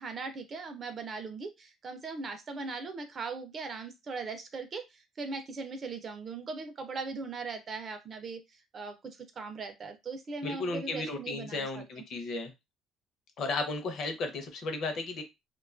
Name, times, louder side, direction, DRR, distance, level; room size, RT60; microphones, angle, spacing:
voice 1, 0.0-8.4 8.7-11.8, right 4 dB, 30° right, 8 dB, 0.4 m, -39 dB
voice 2, 10.4-12.5 13.4-15.2, left 3 dB, 45° left, 6 dB, 0.6 m, -34 dB
2.5 x 2.2 x 2.4 m, 0.22 s
cardioid pair, 180°, 0 cm